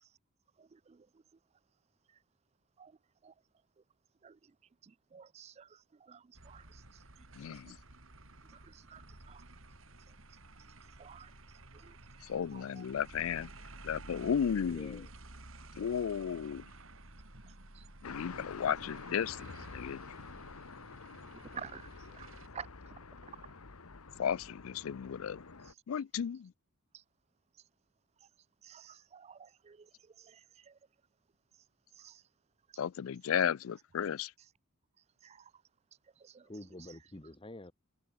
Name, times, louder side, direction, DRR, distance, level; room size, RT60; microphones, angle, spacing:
voice 1, 0.6-1.1 2.8-2.9 3.2-3.3 4.2-4.4 4.8-6.8 7.4-7.8 8.5-9.4 11.0-11.3 11.7-12.0 12.5-12.8 17.7-17.8 21.5-21.8 22.1-22.3 22.5-22.7 26.9-27.0 28.6-29.9 30.2-30.8 32.0-32.2 35.2-35.5 36.2-36.5, right 7 dB, 30° right, 0.3 m, -51 dB
sound 1, 6.3-22.5, right 2 dB, 65° right, 4.4 m, -53 dB
voice 2, 7.4-7.8 12.2-13.5 13.8-15.0 15.8-16.7 18.0-20.0 24.2-25.4 25.9-26.5 32.8-34.3, left 8 dB, 70° left, 0.4 m, -34 dB
voice 3, 14.6-15.1 36.4-37.7, left 1 dB, 25° left, 1.1 m, -48 dB
sound 2, 18.0-25.7, left 4 dB, 90° left, 1.3 m, -49 dB
head